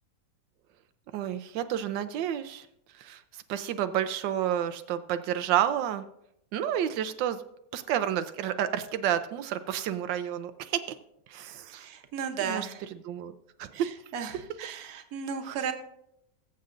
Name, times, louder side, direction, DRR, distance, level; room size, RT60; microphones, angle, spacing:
voice 1, 1.1-2.7 2.9-6.0 6.5-7.4 7.7-10.8 11.3-11.9 12.4-12.7 13.1-13.3 13.6-13.9, right 10 dB, 90° right, 10 dB, 1.3 m, -30 dB
voice 2, 11.6-12.9 13.7-15.7, right 7 dB, 60° right, 6 dB, 1.4 m, -35 dB
20.5 x 7.6 x 2.5 m, 0.78 s
omnidirectional pair, 1.9 m